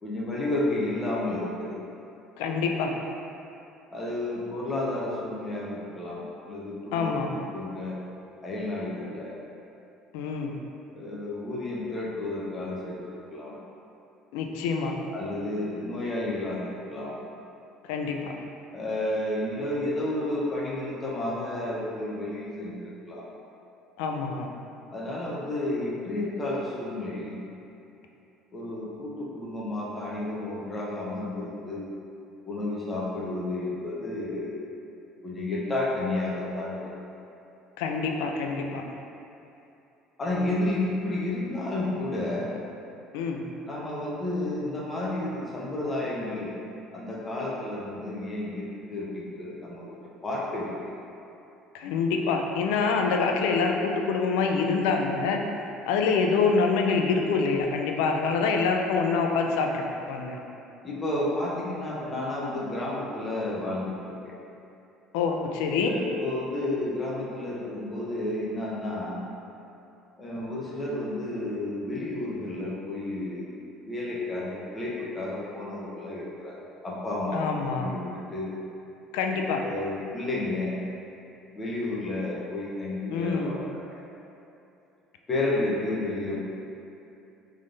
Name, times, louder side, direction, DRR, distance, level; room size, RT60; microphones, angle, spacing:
voice 1, 0.0-1.8 3.9-8.0 8.4-9.3 10.9-13.6 15.1-17.2 18.7-23.3 24.9-27.4 28.5-31.9 32.5-34.7 35.2-36.9 40.2-42.6 43.7-46.6 46.9-50.0 50.2-50.9 60.8-64.3 65.8-69.2 70.2-76.6 76.8-78.5 79.6-80.8 81.5-84.0 85.3-86.4, left 2 dB, 25° left, -5 dB, 1.1 m, -31 dB
voice 2, 2.4-3.0 6.9-7.3 10.1-10.5 14.3-15.0 17.9-18.3 24.0-24.5 37.8-38.8 43.1-43.4 51.7-55.4 55.9-60.4 65.1-66.0 77.3-77.9 79.1-79.6 83.1-83.6, left 4 dB, 85° left, 3 dB, 0.4 m, -26 dB
3.7 x 3.2 x 3.9 m, 2.8 s
supercardioid pair, 95°, 0 cm